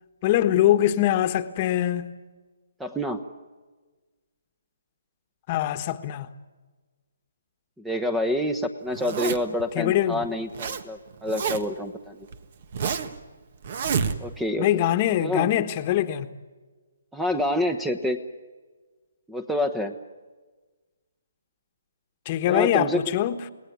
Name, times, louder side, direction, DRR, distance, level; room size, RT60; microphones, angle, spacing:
voice 1, 0.2-2.1 5.5-6.3 9.7-10.2 14.6-16.3 22.2-23.4, left 12 dB, 30° left, 1.4 m, -23 dB
voice 2, 2.8-3.2 7.8-12.3 14.2-14.7 15.2-15.5 17.1-18.2 19.3-19.9 22.5-23.0, left 1 dB, 5° right, 1.1 m, -27 dB
Zipper (clothing), 8.9-9.6 10.2-10.8 11.1-11.8 12.3-13.2 13.6-14.5, right 6 dB, 50° right, 1.7 m, -28 dB
29.5 x 18.5 x 9.6 m
hypercardioid pair, 150°, 0 cm